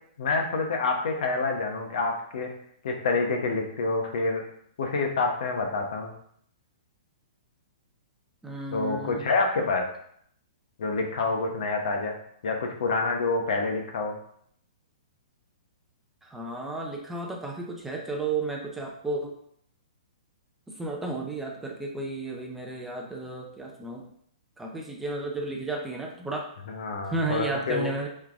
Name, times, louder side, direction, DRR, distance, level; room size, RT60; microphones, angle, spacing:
voice 1, 0.2-2.5 2.8-4.4 4.8-6.1 8.7-9.8 10.8-12.2 12.4-14.2 26.7-27.9, left 3 dB, 65° left, 3 dB, 0.9 m, -27 dB
voice 2, 8.4-9.2 16.2-19.4 20.7-24.0 24.6-26.5 27.1-28.1, right 3 dB, 5° right, 0 dB, 0.5 m, -33 dB
3.7 x 3.2 x 3.5 m, 0.66 s
hypercardioid pair, 150°, 4 cm